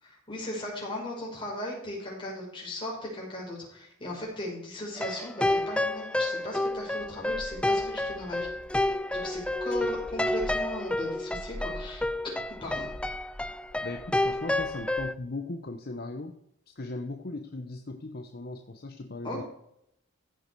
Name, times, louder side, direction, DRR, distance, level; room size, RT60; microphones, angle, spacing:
voice 1, 0.0-8.5 9.1-12.0 12.6-12.9 19.2-19.4, left 1 dB, 25° left, -3 dB, 5.4 m, -37 dB
sound 1, 5.0-15.1, left 1 dB, 5° left, 0.3 m, -30 dB
sound 2, 6.6-15.1, equal, 75° left, 4.8 m, -46 dB
voice 2, 13.8-16.4 16.8-19.4, left 2 dB, 50° left, 5 dB, 0.9 m, -38 dB
15.5 x 6.8 x 4.6 m, 0.75 s
head